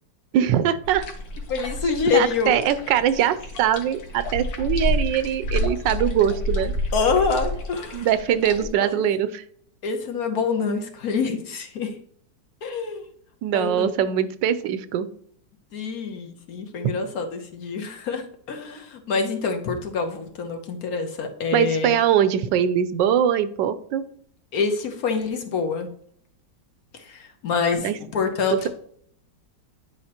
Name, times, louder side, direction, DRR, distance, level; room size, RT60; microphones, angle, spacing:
voice 1, 0.3-1.1 2.1-6.7 7.9-9.4 13.4-15.1 16.8-16.9 21.5-24.0 27.8-28.0 28.5-28.7, right 9 dB, 85° right, 13 dB, 1.3 m, -22 dB
sound 1, 0.8-8.7, left 1 dB, 80° left, 1.7 m, -29 dB
voice 2, 1.5-2.7 6.9-8.1 8.6-9.0 9.8-11.9 12.6-13.0 13.5-13.9 15.7-21.9 24.5-25.9 26.9-28.7, left 5 dB, 60° left, 5 dB, 1.3 m, -26 dB
9.5 x 5.0 x 2.9 m, 0.63 s
omnidirectional pair, 1.9 m